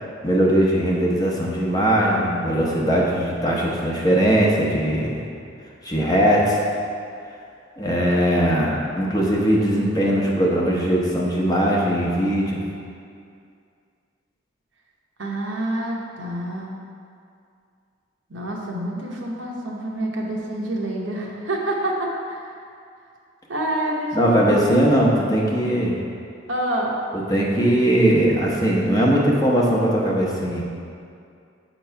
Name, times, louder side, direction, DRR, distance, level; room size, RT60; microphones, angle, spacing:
voice 1, 0.2-5.2 5.8-6.6 7.8-12.6 24.1-26.0 27.1-30.6, right 1 dB, 20° left, -3 dB, 0.8 m, -20 dB
voice 2, 15.2-16.7 18.3-22.6 23.5-24.8 26.5-27.0, right 1 dB, 85° right, -2 dB, 1.0 m, -27 dB
7.7 x 3.0 x 5.7 m, 2.4 s
head